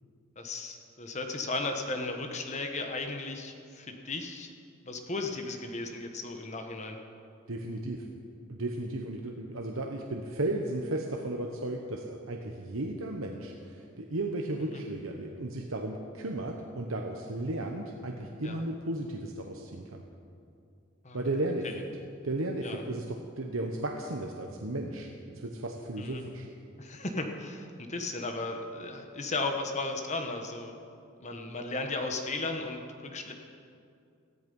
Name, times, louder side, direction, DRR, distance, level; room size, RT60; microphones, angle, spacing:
voice 1, 0.4-4.5 4.8-7.0 14.7-14.8 18.4-18.6 21.0-21.2 21.6-21.8 22.6-22.8 26.0-26.2 26.8-30.7 31.2-33.3, left 3 dB, 35° left, 4 dB, 1.2 m, -35 dB
voice 2, 7.5-8.1 8.5-20.0 21.1-21.8 22.2-25.1 25.3-26.5, right 2 dB, 75° right, 2 dB, 1.1 m, -34 dB
18.5 x 13.5 x 5.5 m, 2.5 s
head